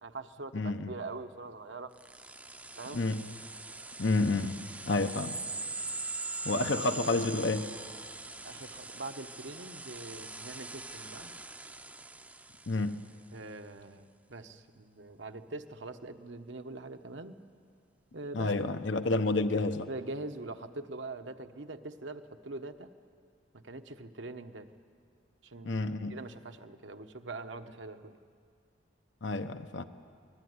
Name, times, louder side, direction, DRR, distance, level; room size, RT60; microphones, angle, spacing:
voice 1, 0.0-2.0 2.8-3.0 8.4-11.3 13.3-17.4 18.1-18.5 19.9-22.9 23.5-24.7 25.4-25.8 26.1-28.2, right 2 dB, 75° right, 7 dB, 1.2 m, -43 dB
voice 2, 0.5-0.9 2.9-3.2 4.0-4.6 4.9-5.4 6.4-7.7 12.7-13.0 18.3-19.9 25.6-26.1 29.2-29.8, left 2 dB, 75° left, 9 dB, 1.0 m, -29 dB
sound 1, 2.0-13.1, right 3 dB, 10° right, 0.6 m, -42 dB
27.5 x 20.5 x 9.6 m, 2.2 s
head